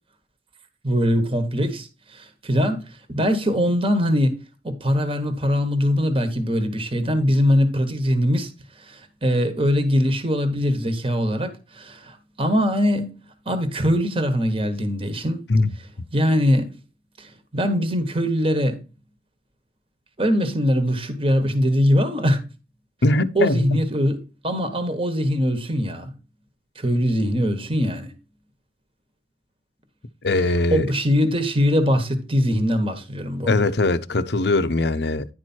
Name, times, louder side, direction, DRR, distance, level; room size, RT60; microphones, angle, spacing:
voice 1, 0.8-2.8 3.1-8.5 8.8-13.2 13.5-15.4 16.1-16.7 17.2-18.8 20.2-22.4 23.3-26.1 26.7-28.1 30.7-33.6, equal, 30° right, 1.3 m, -22 dB
voice 2, 23.0-23.8 30.2-30.9 33.5-35.3, left 2 dB, 70° left, 0.7 m, -21 dB
10.5 x 4.6 x 4.4 m
head